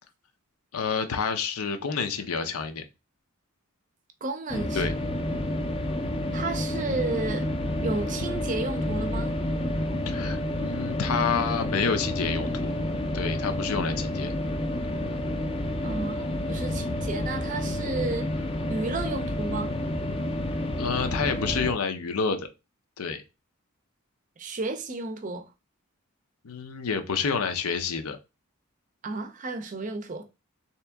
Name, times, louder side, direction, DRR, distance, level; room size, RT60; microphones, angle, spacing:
voice 1, 0.7-2.8 4.7-4.9 10.1-12.8 13.1-14.3 20.8-22.5 23.0-23.2 26.4-28.2, left 5 dB, 85° left, 0.6 m, -29 dB
voice 2, 4.2-4.9 6.3-7.5 7.8-9.3 15.8-18.3 18.7-19.8 24.4-25.5 29.0-30.2, right 3 dB, 35° right, 0.5 m, -32 dB
sound 1, 4.5-21.7, left 1 dB, 25° left, 0.4 m, -29 dB
3.5 x 2.9 x 3.4 m
head